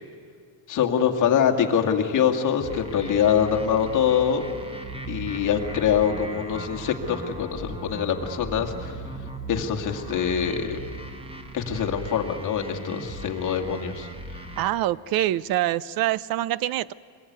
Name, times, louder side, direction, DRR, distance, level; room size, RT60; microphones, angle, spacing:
voice 1, 0.7-4.4 5.1-8.9 9.5-10.8 11.5-14.1, left 8 dB, 40° left, 4 dB, 2.1 m, -24 dB
sound 1, 2.6-14.6, right 2 dB, 10° right, 1.4 m, -37 dB
voice 2, 14.6-16.9, right 14 dB, 50° right, 21 dB, 0.6 m, -25 dB
24.0 x 21.0 x 9.5 m, 2.1 s
cardioid pair, 160°, 46 cm